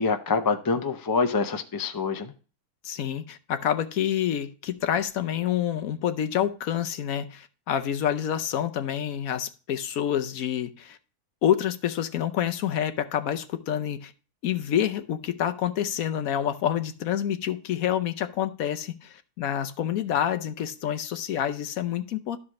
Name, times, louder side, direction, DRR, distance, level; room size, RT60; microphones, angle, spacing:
voice 1, 0.0-2.3, left 4 dB, 35° left, 0.3 m, -26 dB
voice 2, 2.8-11.0 11.4-14.1 14.4-22.4, left 10 dB, 70° left, 1.1 m, -27 dB
12.5 x 4.9 x 3.1 m
omnidirectional pair, 1.6 m